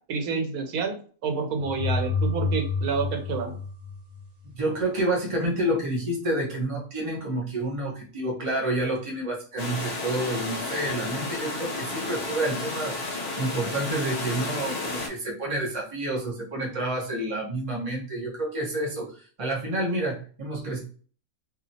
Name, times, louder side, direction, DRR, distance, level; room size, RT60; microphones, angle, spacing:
voice 1, 0.1-3.6, right 5 dB, 90° right, 5 dB, 1.2 m, -29 dB
sound 1, 1.6-4.5, left 3 dB, 65° right, 1.3 m, -29 dB
voice 2, 4.6-13.0 13.4-20.8, right 1 dB, 25° right, -3 dB, 1.0 m, -29 dB
sound 2, 9.6-15.1, left 2 dB, 50° left, 0.9 m, -32 dB
2.9 x 2.8 x 2.7 m, 0.41 s
omnidirectional pair, 1.5 m